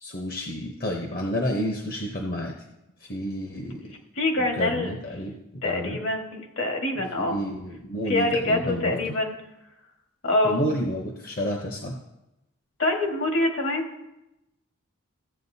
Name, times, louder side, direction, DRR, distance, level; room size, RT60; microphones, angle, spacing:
voice 1, 0.0-2.5 3.0-3.8 4.6-6.0 7.2-9.0 10.4-12.0, equal, 45° left, 1 dB, 0.9 m, -30 dB
voice 2, 4.2-5.0 5.6-7.4 8.1-9.4 10.2-10.6 12.8-13.9, left 2 dB, 65° left, 2 dB, 1.6 m, -25 dB
15.0 x 7.5 x 2.7 m, 0.92 s
head